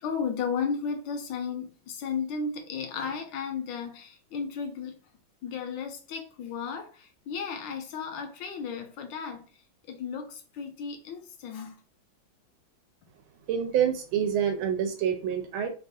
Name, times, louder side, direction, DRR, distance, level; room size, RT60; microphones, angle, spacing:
voice 1, 0.0-4.9 5.4-9.4 9.9-11.8, left 6 dB, 75° left, 1.2 m, -34 dB
voice 2, 13.5-15.7, right 8 dB, 85° right, 1.5 m, -27 dB
3.4 x 2.3 x 2.6 m
omnidirectional pair, 2.2 m